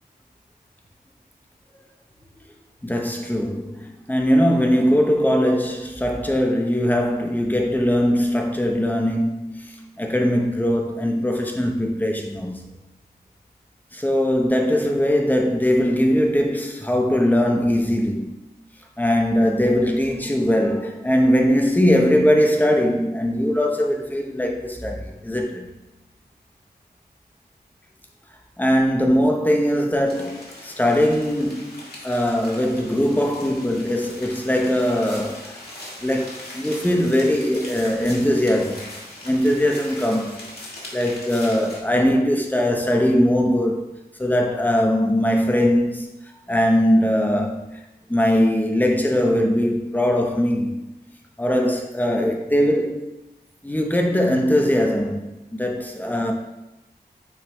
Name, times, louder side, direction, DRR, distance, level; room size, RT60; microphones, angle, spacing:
voice 1, 2.8-12.6 13.9-18.4 19.0-25.7 28.6-35.6 36.0-38.8 39.2-40.5 40.9-43.9 44.2-46.1 46.5-47.6 48.1-50.8 51.4-53.1 53.6-56.3, equal, 10° left, 0.9 m, -21 dB
sound 1, 30.1-41.8, left 1 dB, 65° left, 1.7 m, -40 dB
9.0 x 3.3 x 3.3 m
wide cardioid pair, 80°, 17 cm